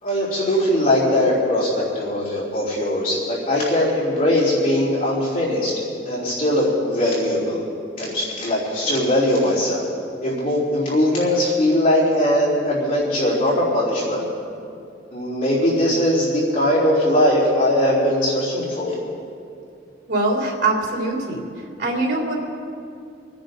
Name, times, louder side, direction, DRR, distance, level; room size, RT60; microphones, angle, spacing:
voice 1, 0.0-5.7 6.0-7.6 8.0-9.8 10.2-14.2 15.1-19.0, left 1 dB, 50° left, -9 dB, 4.2 m, -20 dB
voice 2, 20.1-21.4 21.8-22.3, right 2 dB, 70° right, -2 dB, 3.2 m, -22 dB
27.5 x 10.5 x 4.1 m, 2.5 s
head